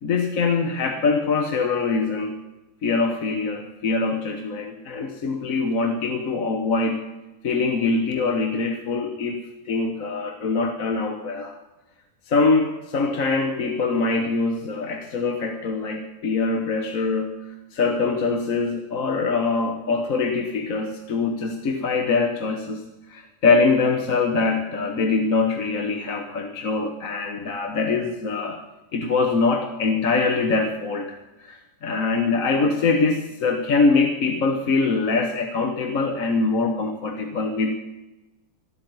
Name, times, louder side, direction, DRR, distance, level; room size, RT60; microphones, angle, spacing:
voice 1, 0.0-2.3 2.8-7.1 7.4-9.4 9.7-11.6 12.3-17.4 17.7-28.6 28.9-37.7, left 4 dB, 60° left, 4 dB, 1.5 m, -23 dB
13.0 x 12.5 x 8.1 m, 1.0 s
omnidirectional pair, 1.7 m